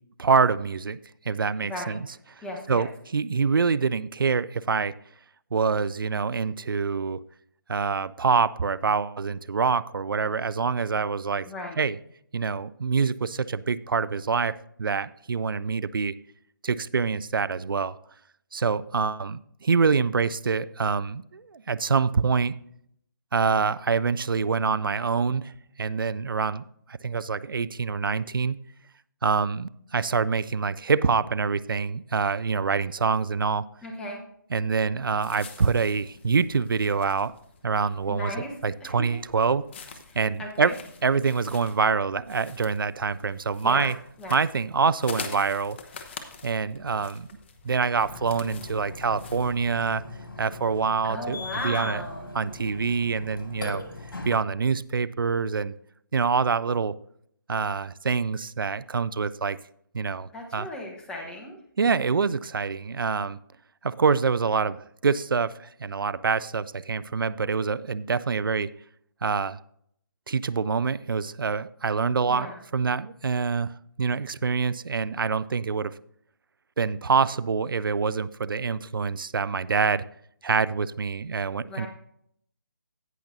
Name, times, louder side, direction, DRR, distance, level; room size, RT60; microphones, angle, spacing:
voice 1, 0.2-1.0 1.3-2.1 2.4-4.9 5.5-7.2 7.7-11.5 11.8-12.0 12.3-16.1 16.6-17.9 18.5-22.5 23.3-25.5 25.8-28.6 29.2-33.7 34.5-37.3 37.6-38.3 38.6-39.6 40.1-40.7 41.0-44.0 44.3-45.8 46.4-47.3 47.6-50.0 50.4-52.0 52.3-53.8 54.3-55.7 56.1-56.9 57.5-59.6 59.9-60.7 61.8-63.4 63.8-68.7 69.2-69.6 70.3-72.5 72.7-73.7 74.0-75.9 76.8-80.0 80.4-81.9, right 5 dB, 80° right, 17 dB, 0.4 m, -25 dB
voice 2, 2.4-2.9 11.4-11.8 33.8-34.2 38.1-38.5 38.8-39.2 40.1-40.7 43.6-43.9 44.2-44.4 51.0-52.3 60.3-61.6 72.3-72.6 81.6-81.9, left 1 dB, 5° left, 0 dB, 1.1 m, -36 dB
sound 1, 35.2-49.9, left 5 dB, 30° left, 0.9 m, -45 dB
Burping eructation, 48.0-54.4, left 2 dB, 85° left, 2.1 m, -39 dB
17.5 x 5.8 x 2.7 m, 0.69 s
figure-of-eight pair, 155°, 11 cm